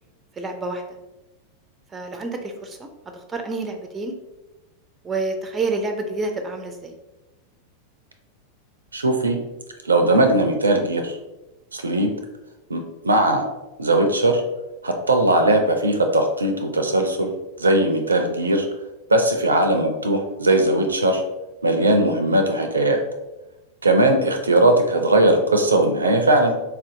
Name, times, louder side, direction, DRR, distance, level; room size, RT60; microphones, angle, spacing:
voice 1, 0.3-0.8 1.9-4.1 5.0-6.9, right 3 dB, 15° right, 5 dB, 0.4 m, -28 dB
voice 2, 8.9-9.4 9.9-11.2 11.7-12.1 12.7-13.4 13.8-14.4 14.8-17.3 17.6-18.7 19.1-21.2 21.6-23.0 23.8-26.6, right 1 dB, 75° right, 5 dB, 0.4 m, -19 dB
4.1 x 2.5 x 2.6 m, 1.0 s
figure-of-eight pair, 90°, 0 cm